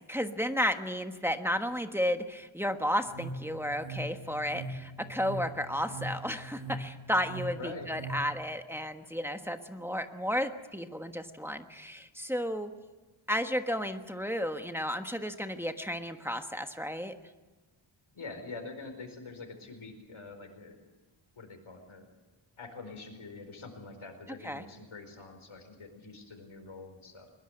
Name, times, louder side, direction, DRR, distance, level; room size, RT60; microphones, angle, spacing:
voice 1, 0.1-12.7 13.3-17.1 24.4-24.6, equal, 5° right, 6 dB, 1.3 m, -33 dB
sound 1, 3.0-8.2, right 1 dB, 65° right, 3.5 m, -41 dB
voice 2, 7.6-7.9 18.1-20.8 21.4-22.1 22.6-27.3, left 3 dB, 75° left, 5 dB, 4.7 m, -45 dB
21.5 x 21.0 x 7.9 m, 1.2 s
wide cardioid pair, 115°, 48 cm